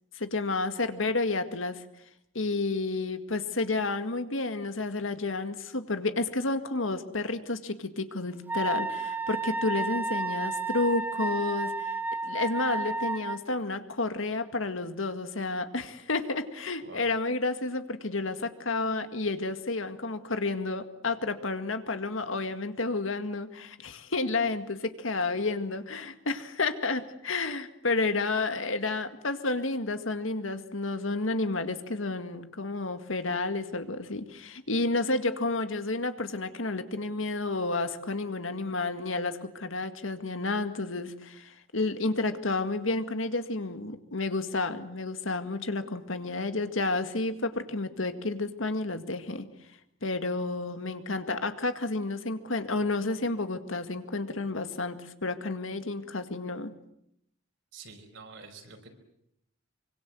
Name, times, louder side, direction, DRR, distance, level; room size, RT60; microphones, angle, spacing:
voice 1, 0.2-1.8 2.4-11.9 12.2-49.5 50.0-56.7, left 3 dB, 80° left, 9 dB, 2.0 m, -31 dB
Wind instrument woodwind instrument, 8.5-13.4, right 3 dB, 10° right, 1.1 m, -31 dB
voice 2, 57.7-59.0, right 4 dB, 70° right, 5 dB, 5.2 m, -47 dB
25.0 x 24.5 x 7.8 m, 0.78 s
head